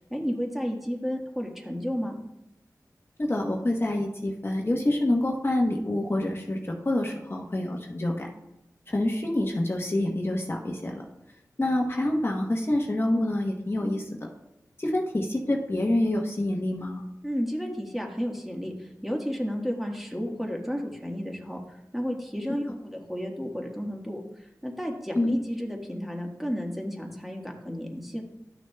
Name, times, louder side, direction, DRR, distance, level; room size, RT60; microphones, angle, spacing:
voice 1, 0.1-2.2 17.2-28.2, equal, ahead, 0 dB, 1.4 m, -32 dB
voice 2, 3.2-8.3 8.9-11.0 11.6-14.3 14.8-17.0 25.1-25.4, left 1 dB, 40° left, 0 dB, 1.0 m, -27 dB
12.0 x 6.3 x 2.3 m, 0.86 s
wide cardioid pair, 55°, 6 cm